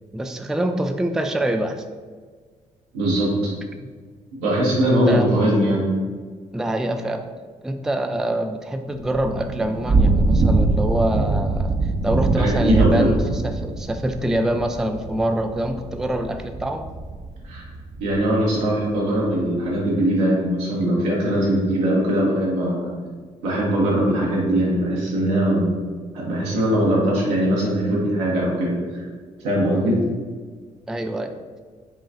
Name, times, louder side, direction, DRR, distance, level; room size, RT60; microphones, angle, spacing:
voice 1, 0.1-1.8 3.8-3.9 4.9-5.3 6.5-7.2 7.6-11.8 12.0-16.9 30.9-31.3, right 1 dB, 5° right, 6 dB, 0.3 m, -25 dB
voice 2, 2.9-3.5 4.4-5.8 12.4-13.1 17.4-17.6 18.0-22.9 23.4-25.7 26.1-29.0 29.4-30.0, right 1 dB, 85° right, -5 dB, 1.1 m, -21 dB
Thunder / Rain, 8.9-18.5, right 3 dB, 45° right, 0.7 m, -23 dB
5.5 x 2.4 x 2.7 m, 1.5 s
hypercardioid pair, 45°, 17 cm